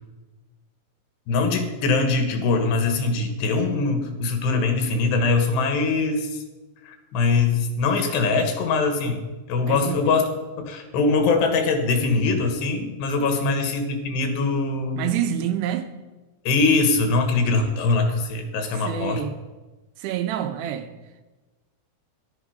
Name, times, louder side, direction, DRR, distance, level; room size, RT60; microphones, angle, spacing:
voice 1, 1.3-6.4 6.8-10.2 10.6-15.2 16.5-19.2, left 3 dB, 90° left, 5 dB, 3.8 m, -22 dB
voice 2, 9.7-10.2 13.4-13.6 15.0-15.9 18.7-19.3 20.0-20.9, right 10 dB, 85° right, 8 dB, 3.1 m, -27 dB
14.0 x 12.0 x 5.1 m, 1.2 s
omnidirectional pair, 4.7 m